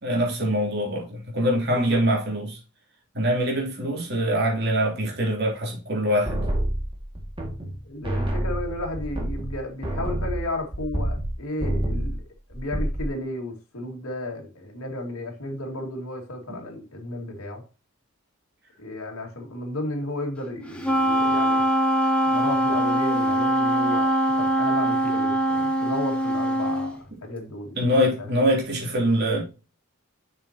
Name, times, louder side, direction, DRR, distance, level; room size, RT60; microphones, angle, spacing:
voice 1, 0.0-2.6 3.1-6.4 27.7-29.4, equal, 50° right, 3.1 m, -24 dB
voice 2, 1.6-2.0 7.8-12.2 12.5-17.6 18.8-21.7 22.2-27.8 28.0-28.3, left 1 dB, 85° left, 2.2 m, -33 dB
sound 1, 6.2-7.8 8.0-11.3 11.6-12.2 12.5-13.1, right 1 dB, 25° right, 2.1 m, -27 dB
Wind instrument woodwind instrument, 20.8-26.9, right 1 dB, 5° left, 1.1 m, -22 dB
7.5 x 6.4 x 2.9 m
head